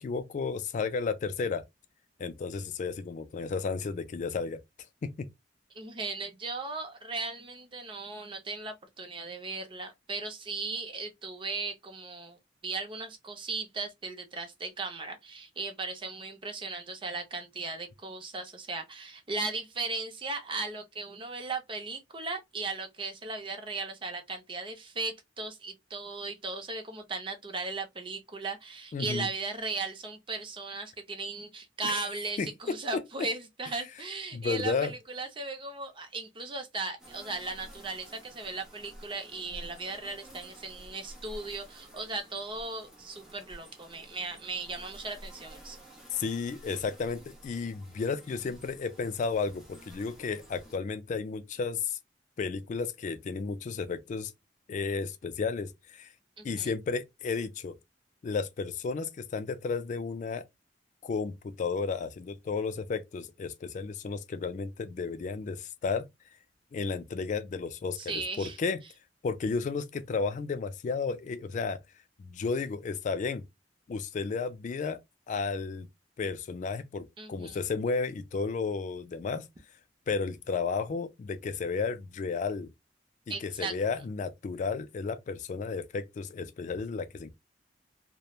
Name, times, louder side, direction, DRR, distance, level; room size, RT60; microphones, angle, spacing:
voice 1, 0.0-1.6 2.2-4.6 5.2-5.3 28.9-29.3 31.8-32.0 32.4-32.5 34.3-34.9 46.1-52.0 52.4-54.3 54.7-56.1 56.4-57.8 58.2-60.4 61.0-66.1 66.7-68.8 69.2-71.8 72.2-73.4 73.9-75.0 75.3-75.9 76.2-79.5 80.1-82.7 83.4-87.3, left 4 dB, 45° left, 0.3 m, -33 dB
voice 2, 5.7-45.8 56.4-56.7 68.0-68.6 77.2-77.6 83.3-84.0, right 3 dB, 30° right, 0.6 m, -37 dB
sound 1, 37.0-50.8, right 1 dB, 5° right, 0.9 m, -51 dB
3.0 x 2.1 x 2.3 m
head